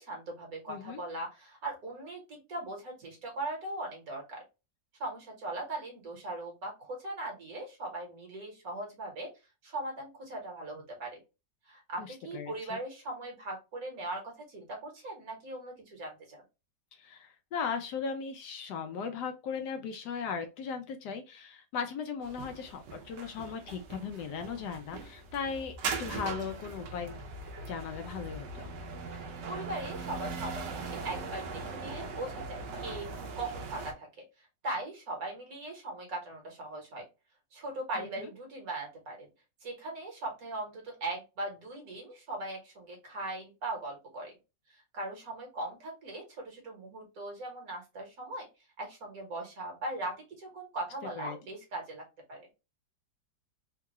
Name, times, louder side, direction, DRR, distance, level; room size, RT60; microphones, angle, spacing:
voice 1, 0.0-4.4 5.0-9.3 9.6-11.2 11.7-16.4 29.5-33.1 33.4-34.1 34.4-37.0 37.5-39.3 39.6-44.3 44.7-48.5 48.8-52.5, right 2 dB, 55° right, 0 dB, 1.6 m, -39 dB
voice 2, 0.7-1.0 12.0-12.8 16.9-27.2 27.7-28.7 38.0-38.3 51.2-51.4, left 6 dB, 75° left, 7 dB, 1.1 m, -38 dB
sound 1, 22.2-33.9, right 4 dB, 70° right, 1.3 m, -40 dB
3.7 x 2.3 x 2.9 m, 0.27 s
omnidirectional pair, 1.9 m